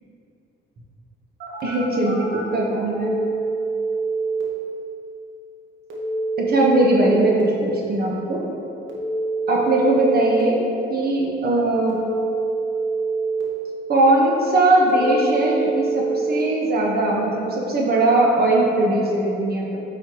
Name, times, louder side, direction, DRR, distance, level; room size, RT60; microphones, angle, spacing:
Telephone, 1.4-2.4 2.9-4.4 5.9-7.4 8.9-10.4 11.9-13.4 14.9-16.4, right 3 dB, 75° right, 1.5 m, -25 dB
voice 1, 1.6-3.2 6.4-8.4 9.5-10.6 10.9-12.0 13.9-19.8, right 2 dB, 50° right, -2 dB, 1.3 m, -20 dB
9.0 x 5.6 x 3.1 m, 2.9 s
cardioid pair, 90°, 20 cm